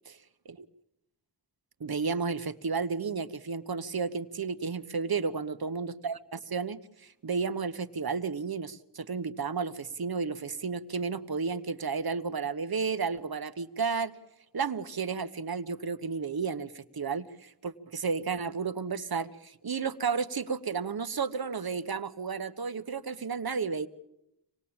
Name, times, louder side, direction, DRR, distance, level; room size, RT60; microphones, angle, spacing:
voice 1, 1.8-14.1 14.5-23.9, right 5 dB, 60° right, 11 dB, 1.3 m, -32 dB
26.5 x 19.5 x 8.9 m, 0.84 s
wide cardioid pair, 75°, 42 cm